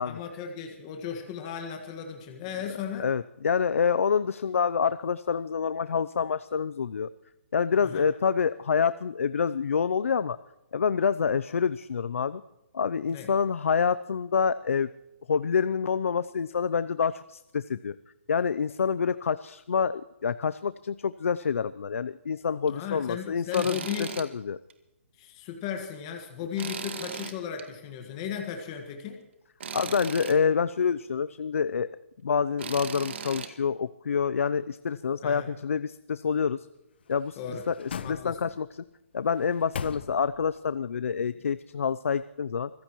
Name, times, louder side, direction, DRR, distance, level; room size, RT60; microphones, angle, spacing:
voice 1, 0.0-3.1 7.8-8.1 13.1-13.3 22.7-24.1 25.2-29.2 35.2-35.5 37.4-37.6 38.0-38.4, left 8 dB, 20° left, 3 dB, 1.6 m, -36 dB
voice 2, 3.0-7.1 7.5-10.4 10.7-12.4 12.7-14.9 15.3-17.9 18.3-24.6 29.7-31.9 32.2-36.7 37.1-37.4 37.7-38.8 39.1-42.7, left 6 dB, 75° left, 15 dB, 0.6 m, -27 dB
Tools, 23.5-24.3 24.7-24.8 26.6-27.6 29.6-30.4 32.6-33.5, right 6 dB, 55° right, 1.8 m, -37 dB
sound 1, 37.0-38.7 39.3-40.6 40.9-41.0, left 6 dB, 50° left, 0.8 m, -40 dB
24.5 x 15.5 x 3.1 m, 0.91 s
hypercardioid pair, 170°, 7 cm